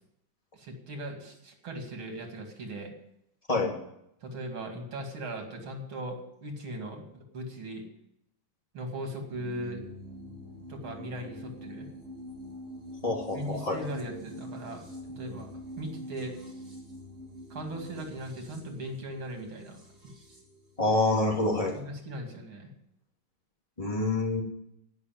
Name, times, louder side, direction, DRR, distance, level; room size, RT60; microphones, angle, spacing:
voice 1, 0.5-2.9 4.2-7.8 8.7-9.8 10.7-11.9 13.3-14.8 15.1-16.4 17.5-19.8 20.0-20.1 21.7-22.7, right 1 dB, 90° right, 3 dB, 3.2 m, -38 dB
sound 1, 9.3-21.8, equal, 30° right, 3.8 m, -45 dB
voice 2, 13.0-13.7 20.8-21.7 23.8-24.4, left 2 dB, 15° left, -2 dB, 2.8 m, -26 dB
15.5 x 6.3 x 9.3 m, 0.78 s
omnidirectional pair, 2.2 m